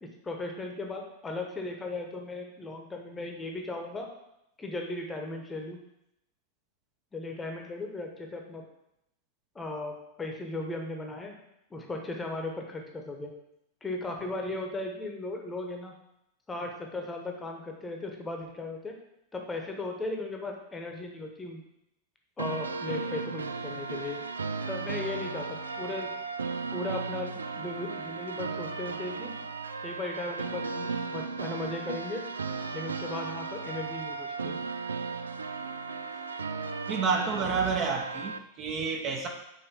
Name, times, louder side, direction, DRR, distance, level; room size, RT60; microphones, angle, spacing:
voice 1, 0.0-4.1 4.6-5.8 7.1-8.6 9.5-11.4 11.7-13.3 13.8-15.9 16.5-19.0 19.3-21.6 22.4-24.2 24.7-26.1 26.7-29.4 29.8-32.2 32.7-34.6, left 2 dB, 15° left, 2 dB, 1.0 m, -37 dB
sound 1, 22.4-38.4, right 4 dB, 75° right, 0.3 m, -36 dB
voice 2, 36.9-39.3, right 5 dB, 30° right, 2 dB, 0.9 m, -29 dB
5.6 x 4.1 x 5.6 m, 0.83 s
figure-of-eight pair, 90°, 0 cm